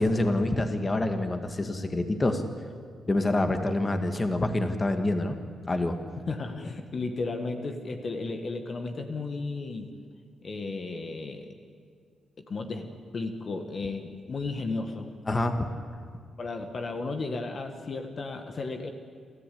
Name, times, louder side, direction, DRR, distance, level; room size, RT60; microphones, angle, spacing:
voice 1, 0.0-2.4 3.1-5.4 5.7-6.0 15.3-15.8, left 2 dB, 30° left, 7 dB, 1.9 m, -26 dB
voice 2, 6.2-9.9 10.4-11.5 12.5-15.1 16.4-18.9, left 3 dB, 50° left, 6 dB, 1.8 m, -34 dB
27.0 x 14.0 x 8.6 m, 2.1 s
cardioid pair, 70°, 0 cm